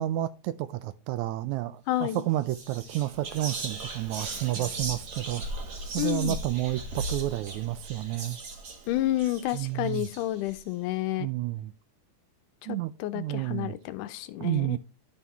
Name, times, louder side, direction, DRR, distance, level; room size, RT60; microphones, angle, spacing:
voice 1, 0.0-5.4 5.9-8.4 9.5-10.1 11.2-11.7 12.7-13.8 14.4-14.8, right 15 dB, 80° right, 1.7 m, -30 dB
voice 2, 1.9-2.2 6.0-6.4 8.9-11.3 12.6-14.8, left 15 dB, 80° left, 2.1 m, -30 dB
Whispering, 2.0-2.2 2.5-10.6, right 2 dB, 50° right, 1.2 m, -38 dB
11.0 x 5.7 x 3.0 m
omnidirectional pair, 3.8 m